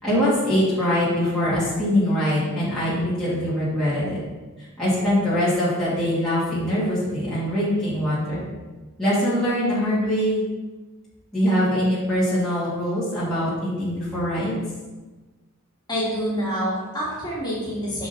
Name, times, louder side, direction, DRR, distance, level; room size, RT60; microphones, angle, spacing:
voice 1, 0.0-4.2 4.6-8.5 9.0-10.4 11.3-14.6, equal, ahead, -12 dB, 1.9 m, -23 dB
voice 2, 15.9-18.1, equal, 20° left, -8 dB, 2.1 m, -27 dB
6.2 x 4.9 x 4.0 m, 1.2 s
head